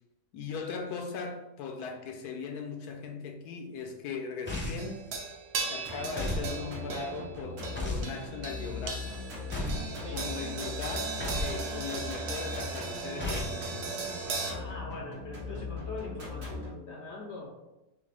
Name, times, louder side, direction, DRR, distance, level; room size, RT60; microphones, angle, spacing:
voice 1, 0.3-5.0 5.6-9.2 10.1-13.9, left 5 dB, 90° left, 1.2 m, -39 dB
sound 1, 4.5-5.0 6.2-6.5 7.8-8.1 9.5-9.9 11.2-11.6 13.2-13.6, left 1 dB, 15° left, 0.4 m, -33 dB
sound 2, 4.8-14.5, right 4 dB, 60° right, 0.7 m, -38 dB
sound 3, 5.8-16.7, left 2 dB, 80° right, 1.8 m, -40 dB
voice 2, 10.0-10.3 14.5-17.6, left 3 dB, 65° left, 0.7 m, -42 dB
6.3 x 2.1 x 3.3 m
omnidirectional pair, 1.6 m